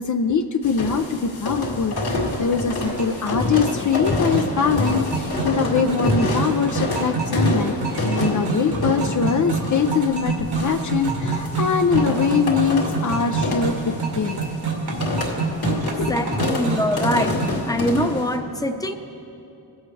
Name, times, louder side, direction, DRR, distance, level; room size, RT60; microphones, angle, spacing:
voice 1, 0.0-14.5 15.9-16.6, left 6 dB, 50° left, 6 dB, 0.6 m, -23 dB
sound 1, 0.6-18.4, left 2 dB, 65° left, 2.3 m, -27 dB
sound 2, 2.8-17.5, right 4 dB, 80° right, 2.0 m, -28 dB
voice 2, 15.8-17.4 17.7-19.0, left 1 dB, 10° left, 6 dB, 0.8 m, -24 dB
23.0 x 8.0 x 3.3 m, 2.7 s
cardioid pair, 80°, 39 cm